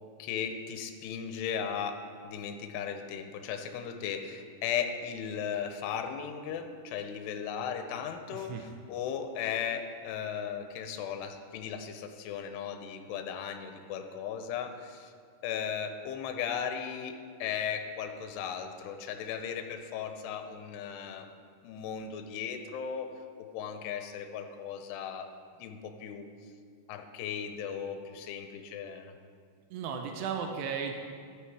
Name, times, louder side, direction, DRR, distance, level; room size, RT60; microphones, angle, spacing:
voice 1, 0.2-2.0 2.2-15.1 15.4-21.3 21.6-23.1 23.5-25.3 25.6-26.3 26.9-29.1, left 8 dB, 80° left, 6 dB, 2.8 m, -36 dB
voice 2, 8.3-8.7 29.7-30.9, right 6 dB, 85° right, 4 dB, 2.8 m, -35 dB
12.5 x 9.0 x 4.7 m, 2.2 s
omnidirectional pair, 4.9 m